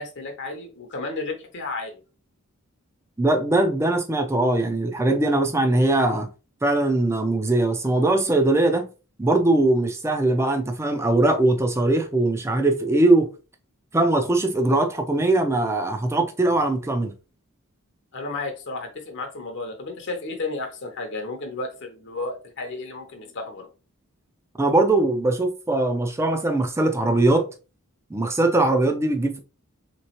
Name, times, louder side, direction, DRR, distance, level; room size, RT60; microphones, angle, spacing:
voice 1, 0.0-2.0 18.1-23.7, left 3 dB, 55° left, 0.7 m, -33 dB
voice 2, 3.2-6.3 6.6-8.9 9.2-13.3 13.9-17.1 24.6-27.5 28.1-29.4, right 2 dB, 10° right, 0.4 m, -21 dB
3.4 x 3.0 x 2.8 m
head